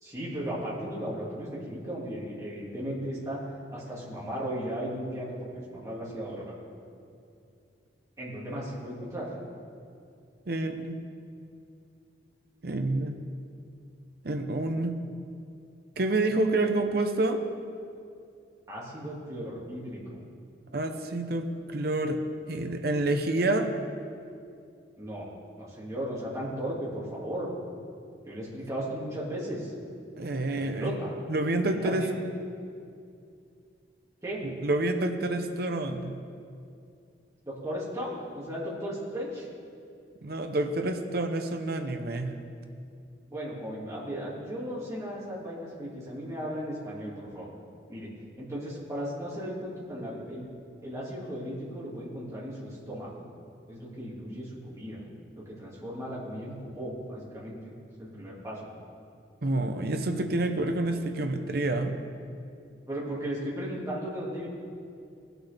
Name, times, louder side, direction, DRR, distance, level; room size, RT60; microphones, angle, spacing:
voice 1, 0.0-3.4 3.7-6.5 8.2-9.3 18.7-20.2 25.0-25.3 25.6-27.5 28.2-29.7 30.5-31.1 31.7-32.2 34.2-34.4 37.4-39.5 43.3-47.5 47.9-48.1 48.4-50.5 50.8-53.2 53.7-55.1 55.4-57.6 58.0-58.7 62.9-64.5, equal, 15° right, -7 dB, 2.3 m, -36 dB
voice 2, 10.5-11.0 12.6-13.2 14.2-14.9 16.0-17.4 20.7-22.2 22.5-23.7 30.2-30.9 31.3-32.0 34.4-36.1 40.2-42.4 59.4-61.9, right 2 dB, 55° right, 6 dB, 0.7 m, -28 dB
17.5 x 6.0 x 3.5 m, 2.4 s
head